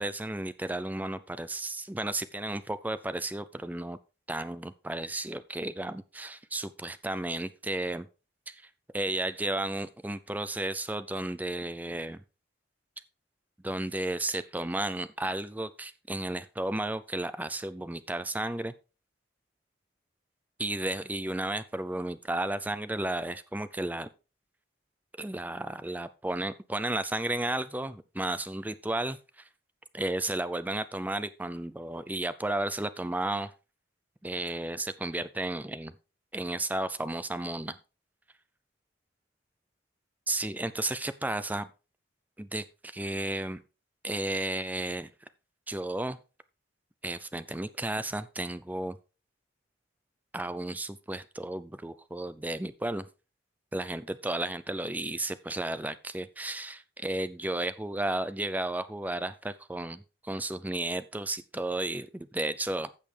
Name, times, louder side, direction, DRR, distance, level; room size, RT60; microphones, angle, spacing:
voice 1, 0.0-4.0 4.3-8.1 8.5-8.6 8.9-12.2 13.6-18.7 20.6-24.1 25.2-29.4 29.9-33.5 34.2-35.9 36.3-37.8 40.3-41.7 42.4-43.6 44.0-45.1 45.7-46.2 47.0-49.0 50.3-53.1 53.7-62.9, right 1 dB, 10° right, 14 dB, 0.4 m, -33 dB
15.0 x 5.4 x 3.4 m, 0.32 s
head